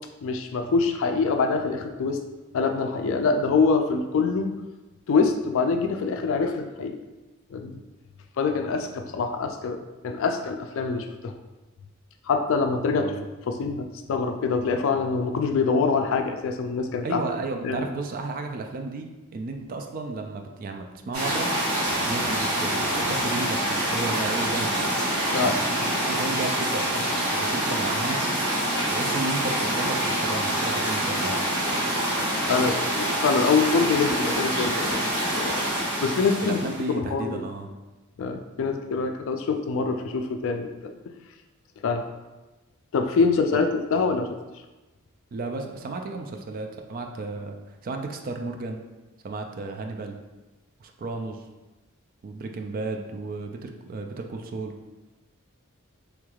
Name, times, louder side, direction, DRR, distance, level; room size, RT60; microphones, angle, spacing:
voice 1, 0.2-2.2 2.5-4.5 5.1-7.0 7.5-7.8 8.4-9.8 10.0-11.3 12.3-13.0 13.5-17.2 17.6-17.9 25.3-25.5 32.5-35.0 35.3-35.7 36.0-36.6 36.9-37.4 38.2-40.9 41.8-42.0 42.9-44.3, left 4 dB, 60° left, 6 dB, 0.3 m, -25 dB
voice 2, 12.9-13.3 17.0-21.5 22.1-24.8 25.4-28.2 28.9-31.4 36.4-37.8 43.5-43.6 45.3-48.8 49.2-50.2 50.8-51.4 52.2-54.8, right 3 dB, 40° right, 4 dB, 0.3 m, -33 dB
sound 1, 21.1-36.9, right 1 dB, 70° right, 1.4 m, -26 dB
3.4 x 3.2 x 2.3 m, 1.1 s
head